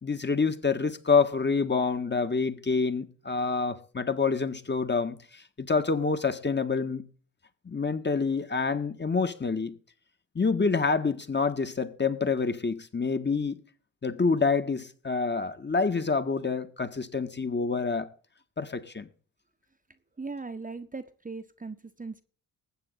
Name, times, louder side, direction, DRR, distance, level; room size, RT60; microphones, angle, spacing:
voice 1, 0.0-7.1 7.6-9.8 10.3-13.6 14.0-18.1 18.6-19.1, left 4 dB, 25° left, 1.7 m, -27 dB
voice 2, 20.2-22.2, right 4 dB, 20° right, 1.2 m, -39 dB
20.0 x 9.0 x 4.1 m
figure-of-eight pair, 40°, 43 cm